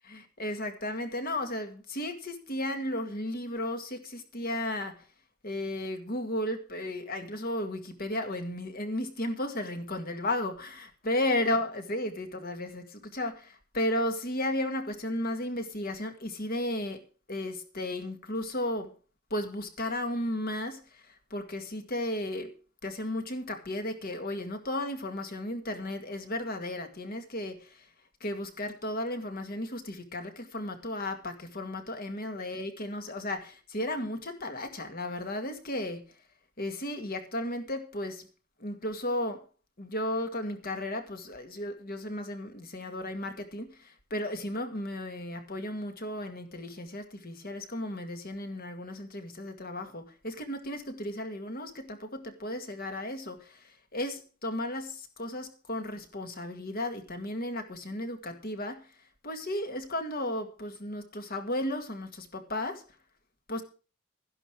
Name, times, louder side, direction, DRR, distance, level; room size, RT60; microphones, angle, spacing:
voice 1, 0.1-4.9 5.4-17.0 17.3-18.9 19.3-20.8 21.3-22.5 22.8-27.6 28.2-36.0 36.6-38.2 38.6-39.4 39.8-43.7 44.1-53.4 53.9-58.8 59.2-62.8 63.5-63.6, left 1 dB, 45° left, 2.0 m, -34 dB
12.5 x 11.0 x 4.8 m
head